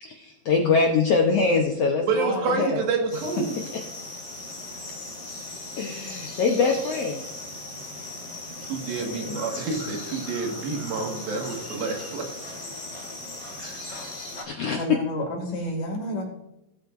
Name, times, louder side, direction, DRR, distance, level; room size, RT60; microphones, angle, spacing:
voice 1, 0.0-2.8 5.8-7.2 9.0-9.3 14.4-14.8, left 4 dB, 80° left, 2 dB, 1.4 m, -24 dB
voice 2, 2.1-3.6 6.6-6.7 8.6-12.5 13.6-13.8, right 4 dB, 85° right, 2 dB, 3.6 m, -28 dB
sound 1, 3.1-14.4, left 2 dB, 25° left, 1.8 m, -38 dB
voice 3, 14.8-16.2, equal, 60° left, 1 dB, 3.7 m, -30 dB
18.5 x 8.6 x 2.5 m, 0.92 s
omnidirectional pair, 4.1 m